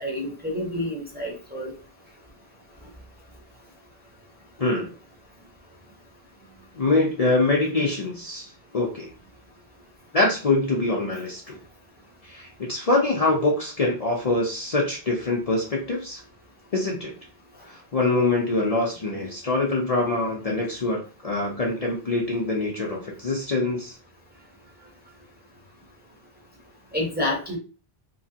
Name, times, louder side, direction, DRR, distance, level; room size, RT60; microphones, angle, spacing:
voice 1, 0.0-1.7 26.9-27.6, left 1 dB, 10° right, -3 dB, 0.9 m, -28 dB
voice 2, 4.6-4.9 6.7-9.1 10.1-11.6 12.2-16.2 16.7-17.1 17.7-24.0, left 2 dB, 40° left, -3 dB, 0.7 m, -24 dB
3.0 x 3.0 x 2.8 m, 0.36 s
omnidirectional pair, 1.0 m